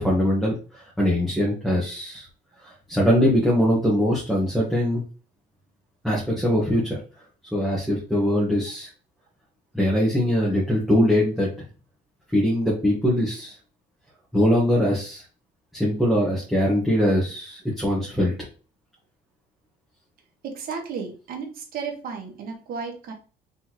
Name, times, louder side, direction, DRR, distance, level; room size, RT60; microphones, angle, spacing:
voice 1, 0.0-2.3 2.6-5.0 6.0-7.0 7.5-8.9 9.7-11.5 12.3-13.5 14.3-15.2 15.7-18.3, equal, ahead, -6 dB, 1.4 m, -22 dB
voice 2, 20.4-23.1, right 5 dB, 60° right, 2 dB, 1.6 m, -33 dB
4.3 x 3.6 x 3.1 m, 0.36 s
cardioid pair, 110°, 17 cm